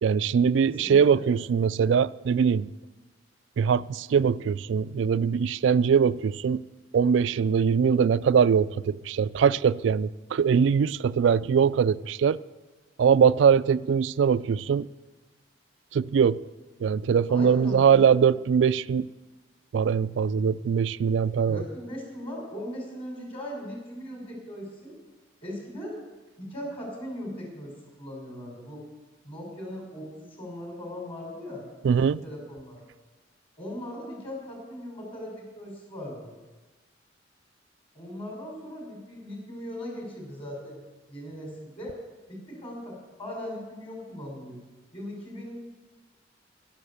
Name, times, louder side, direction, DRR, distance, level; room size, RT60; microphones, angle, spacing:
voice 1, 0.0-2.7 3.6-6.6 6.9-12.4 13.0-14.9 15.9-16.4 16.8-19.1 19.7-21.6 31.8-32.2, right 7 dB, 70° right, 0.3 m, -22 dB
voice 2, 0.6-1.3 17.3-18.1 21.5-24.9 25.4-25.9 26.4-28.8 29.2-32.0 32.2-32.8 33.6-36.4 37.9-40.8 41.1-42.0 42.3-44.6 44.9-45.6, equal, 30° left, 5.3 m, -39 dB
11.5 x 11.5 x 7.0 m
head